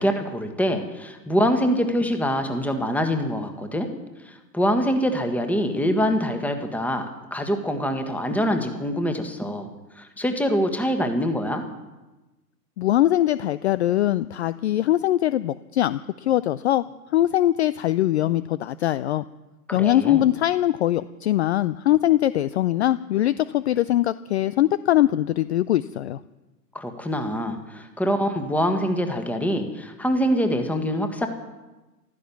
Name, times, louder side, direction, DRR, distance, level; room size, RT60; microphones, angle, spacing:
voice 1, 0.0-3.9 4.2-9.7 10.0-11.6 19.7-20.3 26.7-31.3, equal, 5° left, 6 dB, 1.5 m, -24 dB
voice 2, 12.8-16.8 17.1-19.2 19.7-26.2, left 13 dB, 45° left, 16 dB, 0.5 m, -22 dB
15.0 x 13.0 x 7.1 m, 1.1 s
hypercardioid pair, 115°, 48 cm